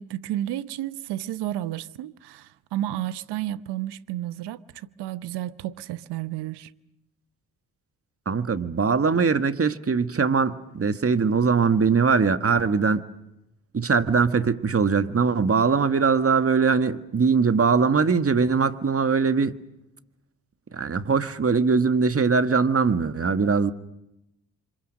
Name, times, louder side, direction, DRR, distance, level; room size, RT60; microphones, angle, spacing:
voice 1, 0.0-6.7, right 13 dB, 75° right, 0.9 m, -32 dB
voice 2, 8.2-13.0 13.7-19.6 20.7-23.7, right 5 dB, 35° right, 1.7 m, -21 dB
29.5 x 25.5 x 6.4 m
hypercardioid pair, 45°, 40 cm